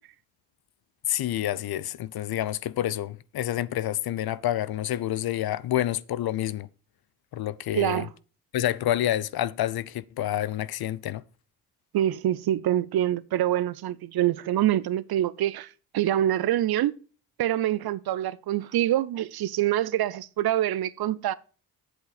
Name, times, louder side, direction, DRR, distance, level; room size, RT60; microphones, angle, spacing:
voice 1, 1.1-6.7 7.3-8.1 8.5-11.2, left 12 dB, 50° left, 0.7 m, -28 dB
voice 2, 7.7-8.1 11.9-15.7 15.9-16.9 17.4-21.3, right 12 dB, 50° right, 0.7 m, -25 dB
8.1 x 8.0 x 4.0 m
hypercardioid pair, 45°, 48 cm